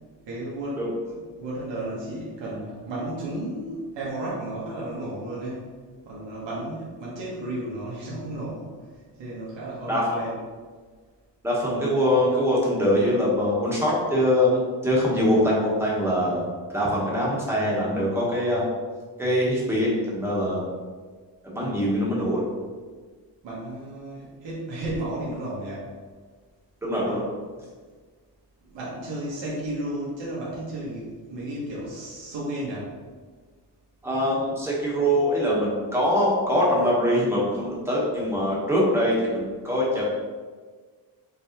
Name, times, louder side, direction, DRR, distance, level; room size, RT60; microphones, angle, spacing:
voice 1, 0.2-0.8 1.0-5.7 6.0-10.4 21.6-21.9 23.4-26.0 26.9-27.2 28.6-33.0, right 1 dB, 85° right, -7 dB, 1.3 m, -33 dB
voice 2, 9.9-10.2 11.4-16.4 16.7-18.7 19.2-20.6 21.4-22.4 26.8-27.2 34.0-40.0, equal, 5° right, -5 dB, 1.1 m, -23 dB
5.3 x 3.3 x 2.9 m, 1.5 s
wide cardioid pair, 165°, 43 cm